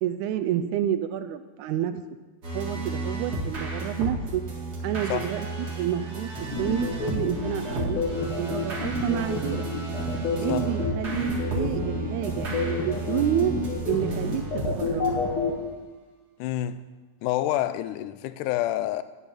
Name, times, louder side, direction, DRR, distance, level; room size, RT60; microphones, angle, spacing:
voice 1, 0.0-2.0 2.5-4.4 4.8-5.5 5.8-9.7 10.4-13.5 13.9-15.0, right 11 dB, 80° right, 1.7 m, -29 dB
sound 1, 2.4-15.7, right 2 dB, 35° right, 1.9 m, -33 dB
sound 2, 6.5-15.5, left 4 dB, 45° left, 2.6 m, -29 dB
voice 2, 16.4-16.8 17.2-19.0, left 13 dB, 80° left, 2.0 m, -28 dB
12.5 x 5.6 x 8.5 m
omnidirectional pair, 3.8 m